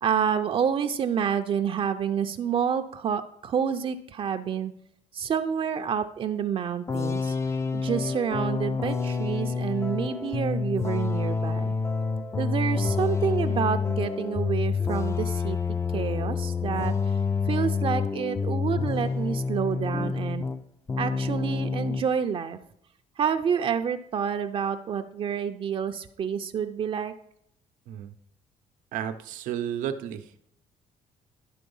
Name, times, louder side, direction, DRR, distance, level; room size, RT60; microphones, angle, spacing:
voice 1, 0.0-4.7 5.1-7.3 7.7-11.7 12.4-15.6 15.9-16.9 17.4-20.5 21.0-22.6 23.2-27.1, right 7 dB, 40° right, 7 dB, 0.5 m, -28 dB
sound 1, 6.9-20.6 20.9-22.1, left 5 dB, 20° left, 0.5 m, -28 dB
voice 2, 28.9-30.3, right 9 dB, 90° right, 8 dB, 0.7 m, -32 dB
11.0 x 3.9 x 5.4 m, 0.72 s
cardioid pair, 115°, 13 cm